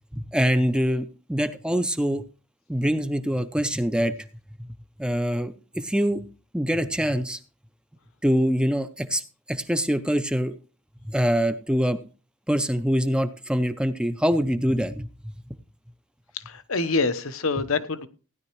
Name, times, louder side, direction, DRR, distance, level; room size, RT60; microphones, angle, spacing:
voice 1, 0.1-2.2 2.7-4.1 5.0-6.2 6.5-7.4 8.2-10.6 11.1-12.0 12.5-15.1, equal, 5° right, 10 dB, 0.5 m, -24 dB
voice 2, 16.5-18.1, left 3 dB, 80° left, 11 dB, 1.0 m, -26 dB
16.0 x 10.5 x 3.1 m, 0.35 s
head